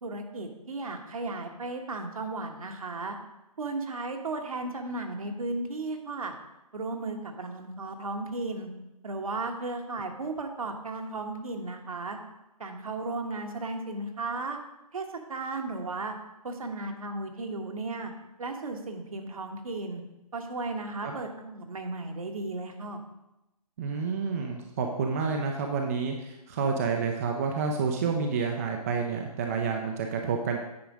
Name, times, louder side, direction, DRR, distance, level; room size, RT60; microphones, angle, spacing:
voice 1, 0.0-3.1 3.6-6.3 6.7-8.7 9.0-12.2 12.6-14.6 14.9-16.1 16.4-18.1 18.4-20.0 20.3-23.0, right 3 dB, 60° right, 4 dB, 1.4 m, -35 dB
voice 2, 23.8-30.6, right 5 dB, 25° right, 2 dB, 0.6 m, -29 dB
9.5 x 5.0 x 4.9 m, 0.92 s
figure-of-eight pair, 145°, 20 cm